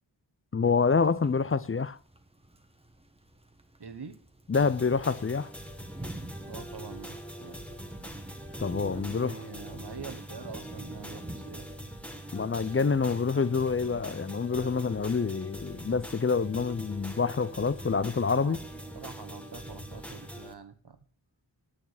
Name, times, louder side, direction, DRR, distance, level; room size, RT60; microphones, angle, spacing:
voice 1, 0.5-2.0 4.5-5.5 8.6-9.4 12.3-18.6, left 5 dB, 30° left, 0.5 m, -27 dB
sound 1, 0.7-20.4, right 1 dB, 15° right, 1.1 m, -50 dB
voice 2, 3.8-4.2 6.4-7.6 8.9-11.7 17.5-17.6 18.3-18.6 18.9-21.0, right 5 dB, 60° right, 1.2 m, -45 dB
sound 2, 4.5-20.5, equal, 5° left, 1.6 m, -43 dB
8.5 x 6.7 x 7.2 m
wide cardioid pair, 50°, 45 cm